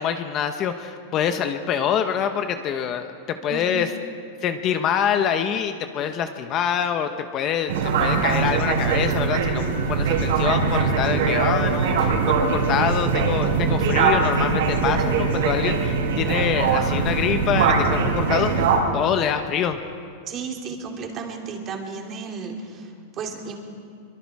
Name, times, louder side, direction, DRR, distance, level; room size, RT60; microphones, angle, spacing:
voice 1, 0.0-3.9 4.4-7.7 8.0-18.5 18.9-19.8, left 8 dB, 30° left, 8 dB, 1.0 m, -25 dB
sound 1, 7.7-18.8, right 5 dB, 75° right, 5.4 m, -21 dB
voice 2, 20.3-23.6, right 5 dB, 25° right, 2 dB, 2.7 m, -33 dB
25.5 x 23.5 x 4.8 m, 2.2 s
supercardioid pair, 160°, 0 cm